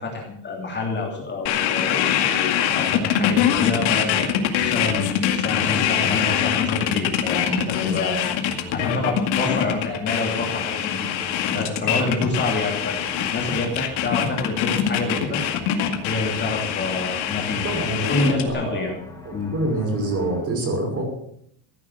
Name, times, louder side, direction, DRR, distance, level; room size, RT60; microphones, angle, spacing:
voice 1, 0.0-11.1 11.5-15.4 16.0-18.9 19.3-19.5, left 3 dB, 20° left, 0 dB, 2.9 m, -27 dB
sound 1, 1.4-20.4, left 2 dB, 5° left, 3.0 m, -42 dB
sound 2, 1.5-18.5, left 10 dB, 75° left, 2.3 m, -23 dB
voice 2, 17.6-18.8 19.3-21.0, right 2 dB, 30° right, 2 dB, 5.4 m, -26 dB
15.5 x 9.9 x 7.5 m, 0.67 s
cardioid pair, 165°, 46 cm